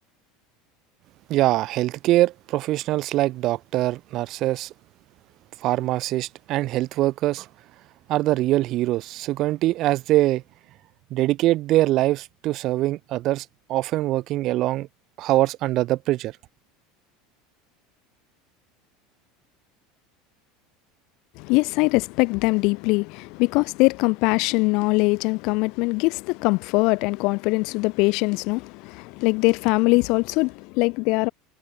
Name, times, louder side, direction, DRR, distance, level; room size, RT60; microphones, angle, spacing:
voice 1, 1.3-4.7 5.6-7.5 8.1-10.4 11.1-14.9 15.2-16.3, right 16 dB, 40° right, 0.9 m, -23 dB
voice 2, 21.4-31.3, left 26 dB, 50° left, 0.5 m, -22 dB
cardioid pair, 170°, 0 cm